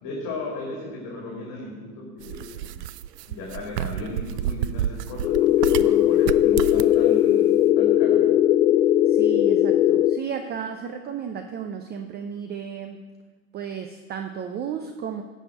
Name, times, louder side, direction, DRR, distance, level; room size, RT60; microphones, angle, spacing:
voice 1, 0.0-2.8 3.3-8.3, left 2 dB, 40° left, -2 dB, 2.7 m, -36 dB
sound 1, 2.2-5.9 6.2-7.0, right 11 dB, 80° right, 0.6 m, -30 dB
sound 2, 5.2-10.2, left 11 dB, 90° left, 0.6 m, -19 dB
voice 2, 9.1-13.0 13.5-15.2, right 7 dB, 20° right, 6 dB, 0.6 m, -33 dB
10.5 x 5.7 x 8.5 m, 1.4 s
hypercardioid pair, 110°, 47 cm